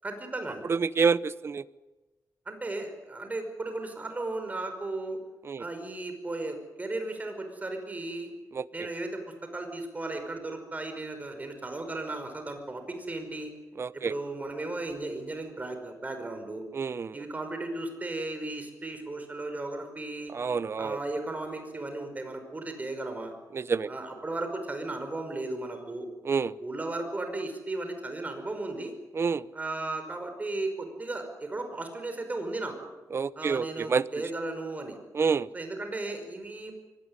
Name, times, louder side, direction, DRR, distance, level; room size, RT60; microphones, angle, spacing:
voice 1, 0.0-0.7 2.5-5.2 5.6-8.3 8.7-13.5 13.9-16.6 17.1-20.3 20.8-23.3 23.9-26.1 26.6-28.9 29.5-32.9 33.4-35.0 35.5-36.7, right 2 dB, 25° right, 6 dB, 5.4 m, -35 dB
voice 2, 0.7-1.6 5.4-5.6 8.5-8.6 13.8-14.1 16.7-17.2 20.3-21.0 23.5-23.9 26.2-26.5 29.2-29.4 33.1-34.0 35.1-35.5, right 5 dB, 45° right, 18 dB, 0.7 m, -27 dB
23.5 x 18.5 x 9.9 m, 1.1 s
cardioid pair, 110°, 6 cm